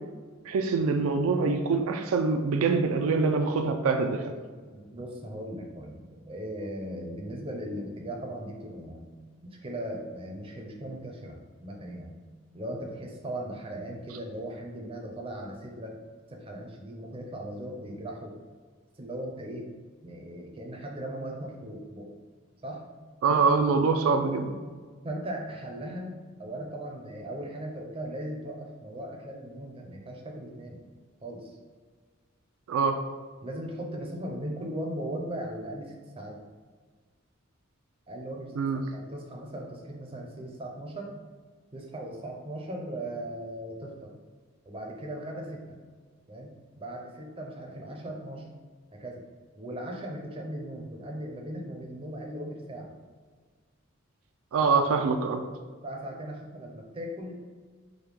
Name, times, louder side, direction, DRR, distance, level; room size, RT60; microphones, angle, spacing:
voice 1, 0.4-4.2 23.2-24.5 32.7-33.0 38.6-38.8 54.5-55.4, right 4 dB, 85° right, 5 dB, 0.4 m, -24 dB
voice 2, 4.7-9.0 9.6-12.1 12.5-15.9 16.3-18.4 19.0-19.7 20.0-22.1 22.6-22.8 25.0-30.8 31.2-31.6 33.4-36.4 38.1-38.5 38.9-41.1 41.7-44.1 44.7-45.8 46.3-46.5 46.8-48.4 48.9-49.2 49.6-52.9 54.6-54.7 55.0-55.1 55.8-57.3, right 1 dB, 25° right, 0 dB, 0.5 m, -38 dB
4.8 x 2.2 x 3.4 m, 1.5 s
head